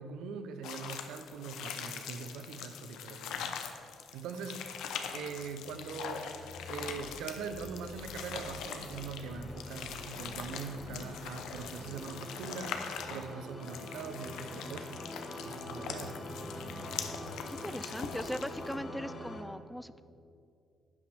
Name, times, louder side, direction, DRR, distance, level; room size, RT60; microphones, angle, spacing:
voice 1, 0.0-3.6 4.1-4.7 5.1-6.3 6.7-15.1 15.4-16.3, right 5 dB, 90° right, 9 dB, 0.6 m, -42 dB
sound 1, 0.6-18.7, left 7 dB, 85° left, 0.6 m, -43 dB
sound 2, 5.1-19.4, left 1 dB, 35° left, 1.2 m, -45 dB
sound 3, 6.9-13.1, left 1 dB, 60° right, 1.8 m, -56 dB
voice 2, 17.5-20.0, equal, 5° left, 14 dB, 0.3 m, -39 dB
11.0 x 8.3 x 3.4 m, 2.5 s
cardioid pair, 90°, 0 cm